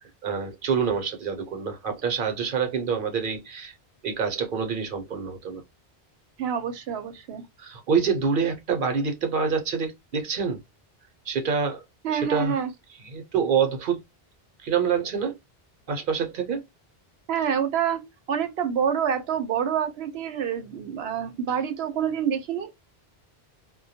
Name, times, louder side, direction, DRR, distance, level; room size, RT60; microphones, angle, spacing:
voice 1, 0.0-3.7 4.0-5.6 7.6-10.6 11.3-11.8 12.1-12.6 13.0-14.0 14.6-15.4 15.9-16.6, right 6 dB, 60° right, 0.8 m, -26 dB
voice 2, 6.4-7.4 12.0-12.7 17.3-18.0 18.3-22.7, right 8 dB, 90° right, 0.9 m, -27 dB
2.2 x 2.2 x 2.6 m
omnidirectional pair, 1.0 m